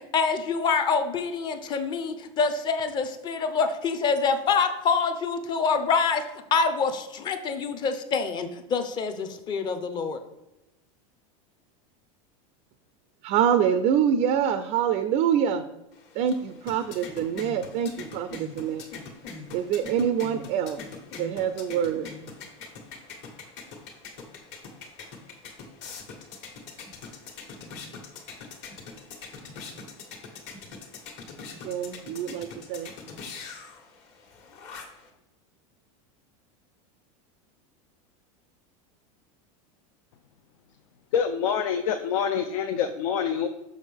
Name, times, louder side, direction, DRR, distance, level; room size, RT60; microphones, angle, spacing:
voice 1, 0.0-6.2 6.5-10.2, left 5 dB, 25° left, 9 dB, 0.6 m, -26 dB
voice 2, 13.2-15.6 16.1-18.9 19.5-20.8 21.2-22.1 31.6-32.9, right 8 dB, 40° right, 10 dB, 0.4 m, -25 dB
sound 1, 15.9-35.1, left 4 dB, 50° left, 1.5 m, -43 dB
voice 3, 41.1-43.5, left 7 dB, 80° left, 6 dB, 0.6 m, -26 dB
6.3 x 6.3 x 3.4 m, 0.93 s
supercardioid pair, 155°, 17 cm